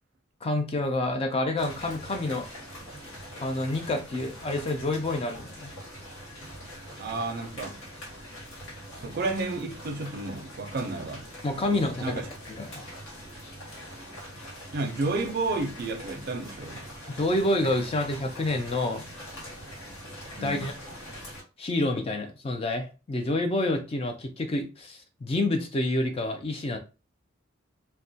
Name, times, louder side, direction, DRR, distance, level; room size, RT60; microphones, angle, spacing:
voice 1, 0.4-2.5 3.4-5.7 11.4-12.2 12.5-12.9 17.1-19.0 20.4-20.7 21.6-26.8, left 2 dB, 30° left, 0.3 m, -28 dB
sound 1, 1.6-21.4, equal, 80° left, 1.3 m, -43 dB
voice 2, 7.0-7.8 9.0-11.3 12.0-12.3 14.7-16.8 20.4-20.7, right 3 dB, 50° right, 0.4 m, -31 dB
2.2 x 2.1 x 2.6 m
head